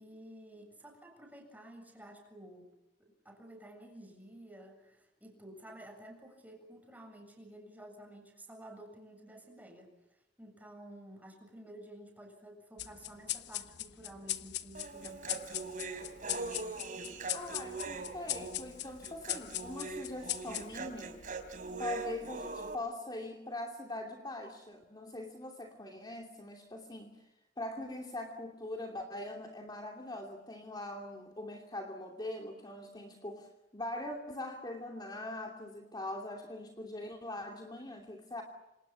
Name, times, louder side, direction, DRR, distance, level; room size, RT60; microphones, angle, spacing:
voice 1, 0.0-2.7 3.0-15.8, right 1 dB, 10° right, 3 dB, 7.5 m, -52 dB
sound 1, 12.8-21.7, left 13 dB, 75° left, 1.2 m, -41 dB
Human voice, 14.7-22.8, right 3 dB, 50° right, 4.0 m, -42 dB
voice 2, 17.3-21.2 21.8-27.2 27.6-38.4, left 1 dB, 25° left, 2 dB, 2.8 m, -42 dB
27.5 x 27.5 x 7.3 m, 0.98 s
head